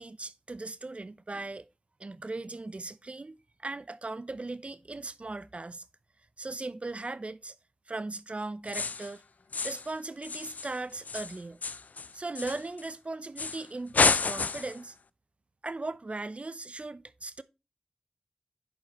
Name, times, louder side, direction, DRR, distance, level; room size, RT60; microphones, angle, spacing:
voice 1, 0.0-1.7 2.0-5.8 6.4-7.6 7.9-9.2 9.6-11.6 12.1-15.0 15.6-17.4, right 2 dB, 50° right, 0.7 m, -38 dB
sound 1, 8.7-9.1 9.5-9.9 10.2-12.9 13.4-13.6 13.9-14.8, left 4 dB, 85° left, 0.4 m, -30 dB
11.0 x 4.7 x 2.9 m
cardioid pair, 40°, 3 cm